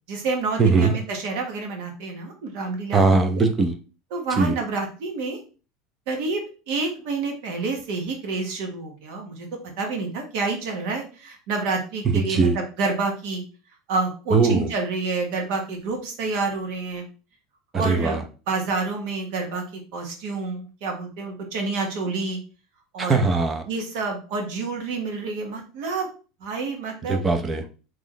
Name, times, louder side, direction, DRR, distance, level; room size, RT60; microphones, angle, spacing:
voice 1, 0.1-3.4 4.1-5.4 6.1-13.4 13.9-17.1 17.7-18.2 18.5-22.4 22.9-23.3 23.7-26.1 26.4-27.2, right 3 dB, 65° right, 2 dB, 1.3 m, -28 dB
voice 2, 0.6-0.9 2.9-3.7 4.4-4.6 12.0-12.6 14.3-14.7 17.7-18.2 23.0-23.6 27.1-27.6, right 4 dB, 15° right, 7 dB, 0.5 m, -20 dB
3.1 x 3.1 x 3.9 m, 0.35 s
cardioid pair, 165°, 0 cm